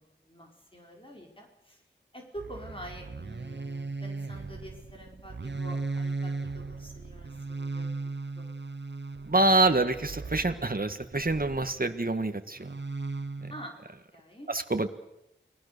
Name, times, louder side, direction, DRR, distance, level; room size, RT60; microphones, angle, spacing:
voice 1, 0.0-1.8 2.1-7.9 8.4-8.5 13.5-13.8 14.1-14.5, equal, 25° left, 0 dB, 4.7 m, -46 dB
sound 1, 2.4-11.9 12.6-13.7, right 3 dB, 65° right, 0.8 m, -37 dB
voice 2, 9.3-12.7 13.4-13.5 14.5-14.9, right 2 dB, 50° right, 8 dB, 1.7 m, -26 dB
29.0 x 20.0 x 6.8 m, 0.88 s
wide cardioid pair, 45°, 19 cm